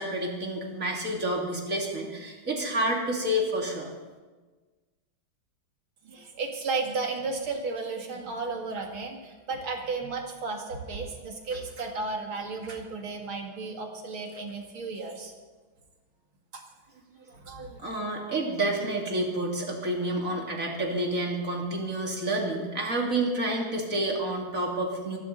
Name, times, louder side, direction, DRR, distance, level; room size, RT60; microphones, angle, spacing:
voice 1, 0.0-3.9 17.8-25.2, right 1 dB, 40° right, 0 dB, 3.0 m, -29 dB
voice 2, 6.0-15.3 16.5-16.6 17.3-17.8, right 4 dB, 75° right, 2 dB, 3.0 m, -34 dB
24.5 x 12.0 x 4.0 m, 1.3 s
omnidirectional pair, 2.3 m